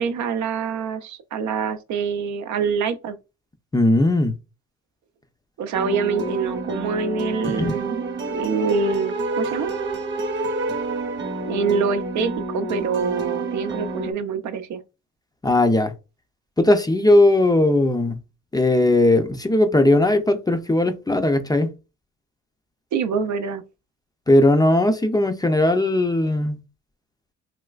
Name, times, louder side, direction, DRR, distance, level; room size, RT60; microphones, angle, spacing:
voice 1, 0.0-3.2 5.6-8.0 8.3-9.7 11.5-14.8 22.9-23.6, right 5 dB, 70° right, 0.5 m, -25 dB
voice 2, 3.7-4.3 7.4-7.8 15.4-15.9 16.6-18.2 18.5-21.7 24.3-26.6, left 1 dB, 15° left, 0.4 m, -18 dB
sound 1, 5.7-14.1, right 2 dB, 40° right, 0.9 m, -28 dB
3.2 x 3.0 x 2.3 m
cardioid pair, 90°, 30 cm